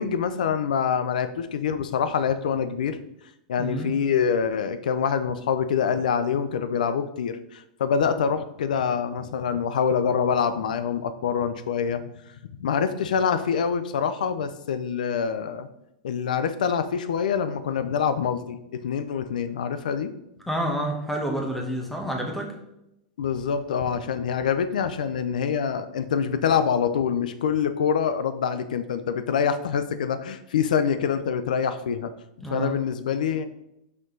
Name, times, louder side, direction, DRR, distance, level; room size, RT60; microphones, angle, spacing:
voice 1, 0.0-3.0 3.5-12.0 12.6-15.7 16.0-20.1 23.2-32.1 32.5-33.5, left 7 dB, 90° left, 11 dB, 0.5 m, -25 dB
voice 2, 3.6-3.9 20.5-22.5 32.4-32.7, right 1 dB, 5° left, 1 dB, 1.1 m, -29 dB
5.8 x 5.2 x 3.8 m, 0.85 s
supercardioid pair, 145°, 4 cm